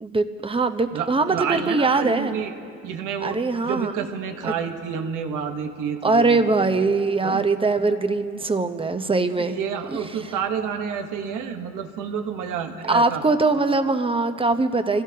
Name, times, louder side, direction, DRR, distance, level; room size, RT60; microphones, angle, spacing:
voice 1, 0.0-2.4 3.2-3.9 4.4-4.5 6.0-9.6 9.9-10.0 12.9-15.0, right 3 dB, 20° right, 8 dB, 0.8 m, -22 dB
voice 2, 0.9-2.5 2.8-3.4 3.6-6.4 7.2-7.4 9.4-13.2, right 7 dB, 90° right, 5 dB, 1.2 m, -29 dB
25.5 x 16.0 x 2.8 m, 2.5 s
cardioid pair, 90°, 30 cm